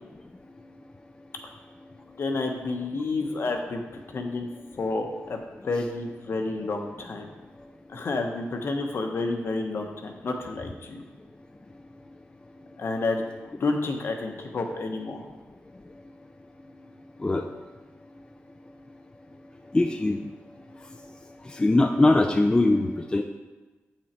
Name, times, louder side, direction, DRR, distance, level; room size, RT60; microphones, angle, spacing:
voice 1, 2.2-3.8 4.1-4.5 4.8-7.3 7.9-11.0 12.8-13.2 13.6-15.2, left 3 dB, 55° left, 4 dB, 0.9 m, -30 dB
voice 2, 19.7-20.2 21.6-22.9 23.1-23.2, left 2 dB, 15° left, 4 dB, 0.4 m, -21 dB
7.8 x 6.0 x 4.3 m, 1.2 s
wide cardioid pair, 115°, 5 cm